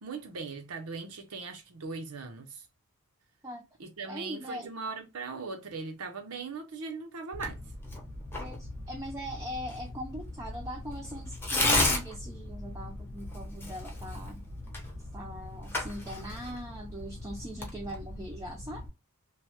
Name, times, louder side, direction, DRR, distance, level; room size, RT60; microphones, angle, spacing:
voice 1, 0.0-2.7 3.8-7.6, right 4 dB, 85° right, 0.7 m, -39 dB
voice 2, 4.1-4.7 8.4-14.5 15.1-18.9, equal, 15° right, 0.5 m, -41 dB
Tearing, 7.3-18.9, left 2 dB, 10° left, 0.9 m, -35 dB
2.9 x 2.2 x 3.1 m
head